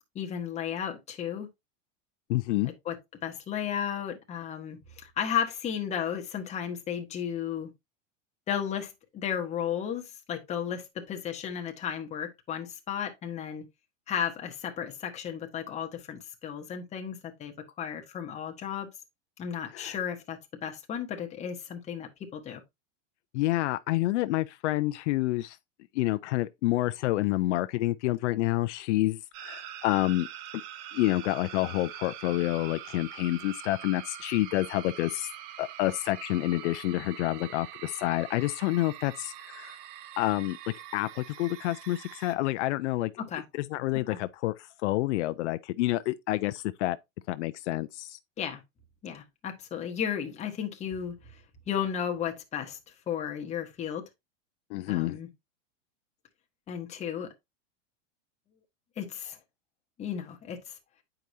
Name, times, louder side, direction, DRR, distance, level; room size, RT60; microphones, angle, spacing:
voice 1, 0.1-1.5 2.6-7.7 8.5-13.6 14.1-18.9 19.4-22.6 43.2-43.4 44.1-44.2 48.4-48.6 49.0-52.8 53.1-54.0 54.9-55.3 56.7-57.3 59.0-59.4 60.0-60.8, left 8 dB, 20° left, 0.9 m, -34 dB
voice 2, 2.3-2.7 19.7-20.0 23.3-25.6 25.9-30.3 30.5-30.6 30.9-35.3 35.6-39.8 40.2-40.6 40.9-43.1 43.5-47.0 47.3-48.2 54.7-55.2, left 17 dB, 65° left, 0.5 m, -28 dB
sound 1, 29.3-42.3, right 11 dB, 40° right, 0.6 m, -44 dB
9.0 x 4.8 x 2.7 m
supercardioid pair, 155°, 38 cm